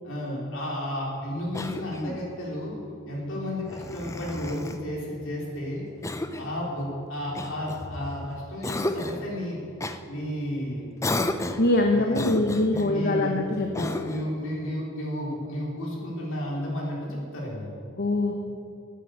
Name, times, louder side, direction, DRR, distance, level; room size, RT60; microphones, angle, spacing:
voice 1, 0.0-2.8 3.0-5.8 6.4-9.6 10.1-10.9 11.9-12.4 12.7-13.4 13.7-17.7, left 1 dB, 65° left, -3 dB, 3.4 m, -32 dB
Cough, 1.5-2.3 3.7-4.8 6.0-6.6 7.4-8.2 8.6-9.3 9.8-10.0 11.0-11.7 12.1-12.9 13.7-14.3, left 2 dB, 15° left, 0.5 m, -32 dB
voice 2, 11.6-14.0 18.0-18.3, left 2 dB, 45° left, 3 dB, 0.9 m, -23 dB
9.4 x 9.2 x 7.8 m, 2.5 s
head